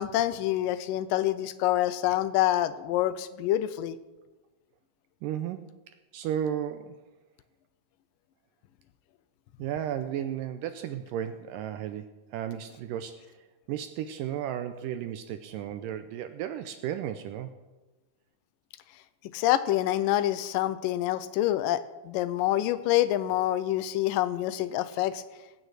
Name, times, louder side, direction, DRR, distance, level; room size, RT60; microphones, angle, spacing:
voice 1, 0.0-4.0 19.3-25.2, left 13 dB, 80° left, 14 dB, 2.1 m, -26 dB
voice 2, 5.2-5.7 6.1-7.0 9.6-13.4 13.7-17.5, right 10 dB, 80° right, 9 dB, 2.0 m, -34 dB
20.0 x 9.1 x 4.8 m, 1.1 s
omnidirectional pair, 4.3 m